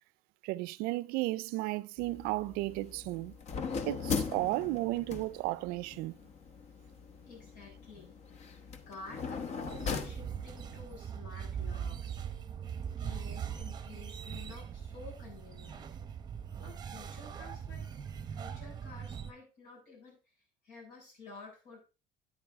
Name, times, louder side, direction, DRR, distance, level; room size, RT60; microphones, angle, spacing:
voice 1, 0.4-3.3 3.9-6.2, right 20 dB, 80° right, 0.4 m, -34 dB
sound 1, 2.0-10.9, left 5 dB, 45° left, 1.0 m, -40 dB
voice 2, 7.3-8.1 8.5-12.2 13.0-15.9 16.6-17.8 18.2-20.3 20.6-21.9, left 3 dB, 70° left, 6.6 m, -51 dB
sound 2, 9.6-19.3, right 8 dB, 25° right, 0.8 m, -41 dB
9.4 x 8.8 x 3.5 m
cardioid pair, 135°, 15 cm